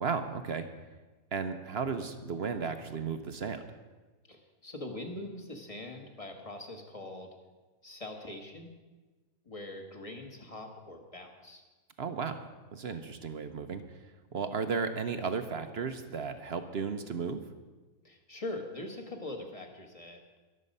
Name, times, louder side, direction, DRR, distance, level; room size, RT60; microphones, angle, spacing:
voice 1, 0.0-0.7 1.3-3.7 12.0-12.4 12.7-13.8 14.3-17.4, right 5 dB, 50° right, 8 dB, 0.9 m, -34 dB
voice 2, 4.3-7.3 7.8-8.7 9.4-11.6 18.0-20.2, left 2 dB, 20° left, 3 dB, 1.6 m, -42 dB
22.0 x 7.6 x 5.4 m, 1.3 s
omnidirectional pair, 1.7 m